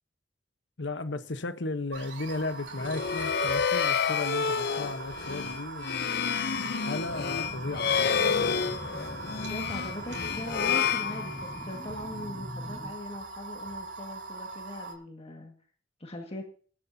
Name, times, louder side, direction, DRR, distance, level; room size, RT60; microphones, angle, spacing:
voice 1, 0.8-8.4, left 2 dB, 80° left, 1.0 m, -36 dB
sound 1, 1.9-14.9, right 3 dB, 90° right, 5.1 m, -41 dB
sound 2, 2.7-11.8, left 6 dB, 60° left, 0.6 m, -29 dB
sound 3, 7.1-12.9, left 1 dB, 15° left, 1.0 m, -42 dB
voice 2, 9.4-15.5 16.0-16.5, left 1 dB, 35° left, 1.8 m, -40 dB
21.5 x 11.0 x 2.7 m
head